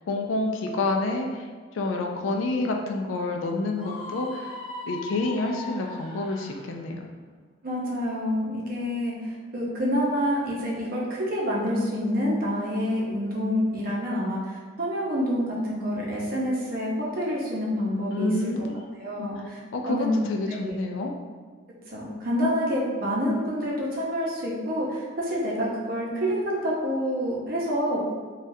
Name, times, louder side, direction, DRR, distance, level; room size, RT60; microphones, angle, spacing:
voice 1, 0.1-1.4 1.7-4.5 4.9-7.0 18.1-18.8 19.2-19.3 19.7-21.1, left 2 dB, 75° left, 2 dB, 0.3 m, -28 dB
Screaming, 3.8-6.7, left 3 dB, 25° left, 1.0 m, -39 dB
voice 2, 7.6-18.7 19.0-19.6 19.8-20.2 20.5-20.8 21.9-28.0, equal, 45° right, -4 dB, 0.7 m, -27 dB
3.3 x 2.3 x 2.7 m, 1.6 s
head